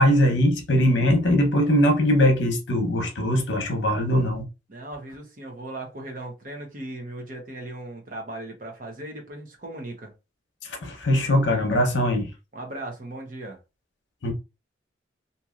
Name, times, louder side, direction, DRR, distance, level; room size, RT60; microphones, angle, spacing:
voice 1, 0.0-4.4 10.6-12.3 14.2-14.3, equal, 70° left, 0.8 m, -21 dB
voice 2, 4.7-10.1 12.5-13.6, right 1 dB, 45° right, 0.9 m, -37 dB
2.8 x 2.6 x 2.4 m
head